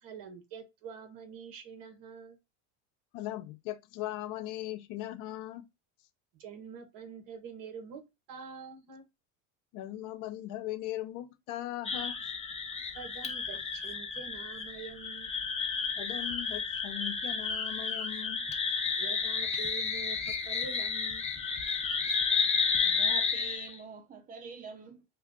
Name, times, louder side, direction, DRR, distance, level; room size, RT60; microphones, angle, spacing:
voice 1, 0.0-2.4 6.3-8.0 8.3-9.0 12.9-15.3 19.0-21.2, right 6 dB, 55° right, 1.2 m, -46 dB
voice 2, 3.1-5.6 9.7-12.1 16.0-18.4, left 14 dB, 55° left, 0.6 m, -39 dB
sound 1, 11.8-23.8, left 5 dB, 15° left, 0.7 m, -32 dB
voice 3, 22.8-25.0, right 5 dB, 20° right, 0.7 m, -45 dB
2.9 x 2.3 x 3.6 m
supercardioid pair, 125°, 40 cm